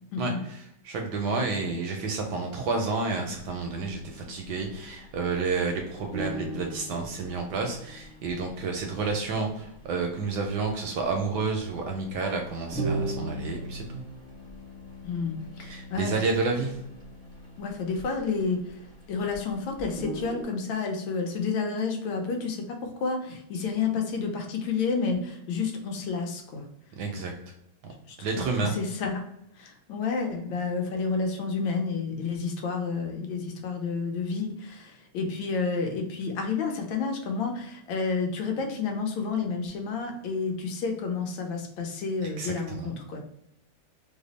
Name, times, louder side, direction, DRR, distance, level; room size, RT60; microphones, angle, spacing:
voice 1, 0.2-14.0 15.6-16.8 27.0-27.3 28.2-28.7 42.2-42.9, right 4 dB, 75° right, 2 dB, 1.0 m, -30 dB
sound 1, 3.2-5.5 5.8-5.9 6.1-19.4 19.7-20.4, right 1 dB, 5° left, 0.4 m, -39 dB
voice 2, 15.0-16.2 17.6-18.6 19.1-26.6 28.6-29.2 29.6-43.2, left 4 dB, 80° left, 3 dB, 1.4 m, -30 dB
3.4 x 2.0 x 3.9 m, 0.79 s
omnidirectional pair, 2.2 m